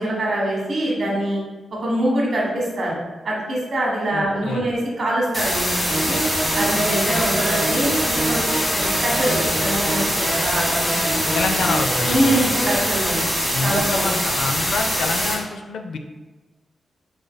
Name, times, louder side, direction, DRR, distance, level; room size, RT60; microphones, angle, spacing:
voice 1, 0.0-1.4 1.8-3.0 3.2-6.2 6.5-8.5 8.7-11.3 12.0-13.2 13.6-14.1, right 1 dB, 45° right, -3 dB, 1.3 m, -24 dB
voice 2, 4.1-4.6 11.3-12.4 13.5-16.0, left 4 dB, 90° left, 5 dB, 0.4 m, -27 dB
sound 1, 5.3-15.3, equal, 15° left, 1.1 m, -23 dB
sound 2, 5.9-12.8, right 1 dB, ahead, 0.5 m, -27 dB
5.0 x 3.9 x 2.2 m, 1.2 s
wide cardioid pair, 175°, 0 cm